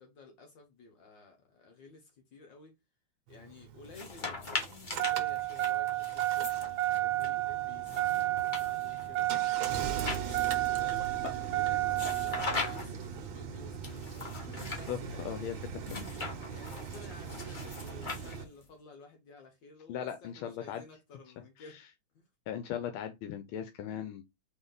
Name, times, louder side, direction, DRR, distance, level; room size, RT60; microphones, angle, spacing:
voice 1, 0.0-2.8 3.3-9.3 10.6-12.4 12.6-14.4 14.7-15.8 16.5-21.8 22.1-22.3, left 3 dB, 65° left, 1.8 m, -53 dB
Engine starting, 3.3-18.4, right 14 dB, 75° right, 1.5 m, -33 dB
sound 1, 3.8-7.3 7.9-10.7 11.9-13.1 13.8-14.9 15.8-18.7, left 3 dB, 35° left, 0.8 m, -40 dB
voice 2, 14.7-15.8 19.9-20.8 22.5-24.2, left 9 dB, 85° left, 1.5 m, -38 dB
4.2 x 3.3 x 3.8 m
omnidirectional pair, 2.2 m